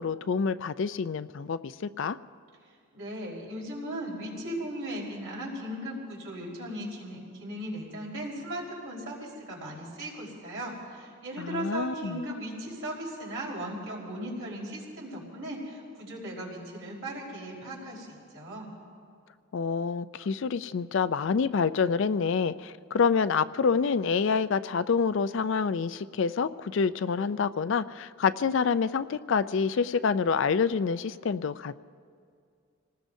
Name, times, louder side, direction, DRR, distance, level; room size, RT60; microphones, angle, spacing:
voice 1, 0.0-2.2 11.4-12.2 19.5-31.7, left 5 dB, 60° left, 14 dB, 0.4 m, -27 dB
voice 2, 2.6-18.7, right 1 dB, 70° right, -3 dB, 4.3 m, -37 dB
27.5 x 19.0 x 2.7 m, 2.2 s
head